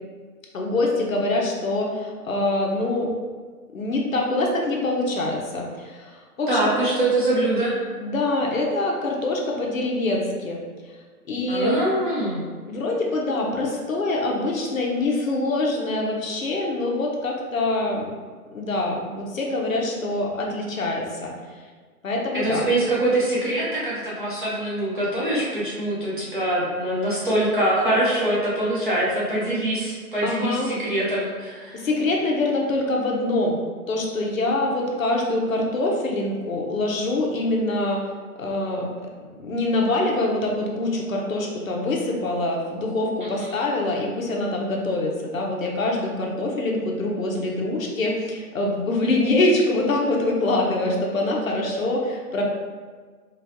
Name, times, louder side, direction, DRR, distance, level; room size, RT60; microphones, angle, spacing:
voice 1, 0.5-3.1 3.7-6.7 8.0-10.6 11.3-11.8 12.6-18.1 18.5-21.3 22.0-22.7 30.2-30.7 31.7-33.6 33.9-38.0 38.4-38.9 39.4-52.4, left 2 dB, 60° left, -1 dB, 0.7 m, -24 dB
voice 2, 6.5-7.7 11.5-12.4 22.3-31.8 43.2-43.6, right 1 dB, 35° right, -7 dB, 0.8 m, -24 dB
4.9 x 2.3 x 2.8 m, 1.5 s
hypercardioid pair, 180°, 46 cm